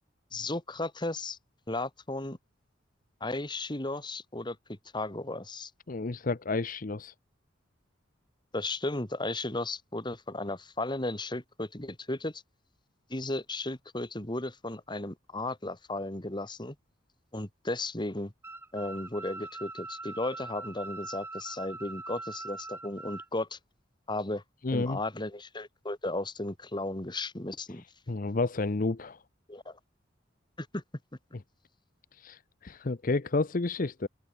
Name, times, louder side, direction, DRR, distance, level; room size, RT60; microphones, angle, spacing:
voice 1, 0.3-1.4 1.7-2.4 3.2-5.7 8.5-12.4 13.1-16.8 17.3-18.3 18.7-23.6 24.1-24.4 24.7-27.8 29.5-29.8 30.6-30.8, left 2 dB, 25° left, 2.2 m, -35 dB
voice 2, 5.9-7.1 24.6-25.0 28.1-29.2 32.2-34.1, left 3 dB, 45° left, 0.7 m, -30 dB
sound 1, 18.4-23.3, right 2 dB, 15° right, 3.3 m, -42 dB
open air
head